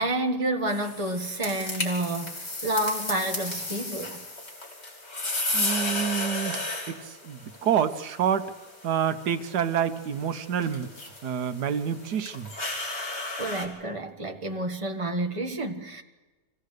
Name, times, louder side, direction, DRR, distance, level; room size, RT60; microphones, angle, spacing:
voice 1, 0.0-4.2 13.4-16.0, right 1 dB, 20° right, 1.4 m, -29 dB
sound 1, 0.7-13.6, left 2 dB, 40° left, 3.2 m, -34 dB
voice 2, 5.5-8.5 8.8-10.9 11.2-12.5, right 8 dB, 80° right, 1.5 m, -28 dB
25.0 x 16.5 x 6.6 m
omnidirectional pair, 1.7 m